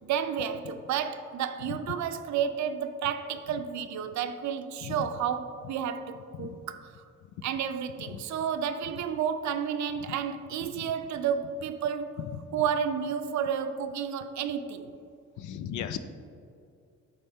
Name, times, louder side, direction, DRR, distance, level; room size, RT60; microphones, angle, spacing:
voice 1, 0.0-6.5 7.4-12.2 12.5-14.9, right 8 dB, 70° right, 0.5 m, -31 dB
voice 2, 4.8-5.1 5.6-5.7 6.3-6.6 7.2-7.4 8.0-8.2 10.0-10.1 10.6-10.9 12.2-12.6 15.4-16.0, left 9 dB, 75° left, 0.5 m, -38 dB
7.6 x 4.3 x 3.5 m
cardioid pair, 90°, 30 cm